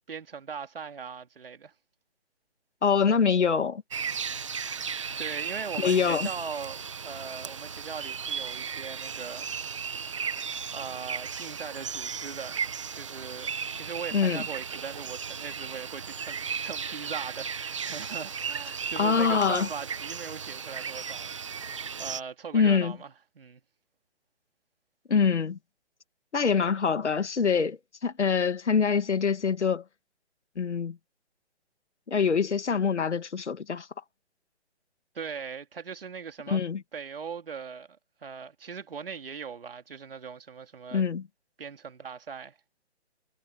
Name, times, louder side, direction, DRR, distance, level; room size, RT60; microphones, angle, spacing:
voice 1, 0.1-1.7 5.2-9.5 10.0-10.1 10.7-23.6 35.1-36.6 36.9-41.1 41.6-42.6, right 6 dB, 55° right, 2.8 m, -40 dB
voice 2, 2.8-3.8 5.8-6.3 14.1-14.4 19.0-19.7 22.5-22.9 25.1-25.6 26.3-29.8 30.6-31.0 32.1-33.9 36.5-36.8 40.9-41.2, left 6 dB, 80° left, 2.1 m, -24 dB
sound 1, 3.9-22.2, right 6 dB, 25° right, 1.0 m, -35 dB
hypercardioid pair, 175°, 34 cm